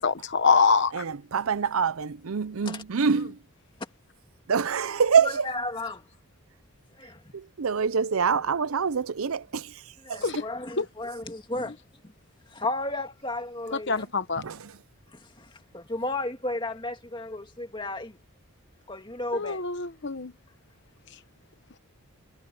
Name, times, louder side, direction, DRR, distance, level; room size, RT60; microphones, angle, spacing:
voice 1, 0.0-1.0 10.2-10.4 10.8-10.9 13.7-14.4 19.3-20.3, left 4 dB, 55° left, 1.0 m, -24 dB
voice 2, 0.9-3.4 4.5-5.5 7.3-9.7 10.1-10.2 14.4-14.7, right 6 dB, 75° right, 0.6 m, -25 dB
voice 3, 5.2-6.0 7.0-7.2 10.0-11.8 12.5-14.1 15.1-18.2 18.9-19.6, left 2 dB, 20° left, 2.2 m, -33 dB
head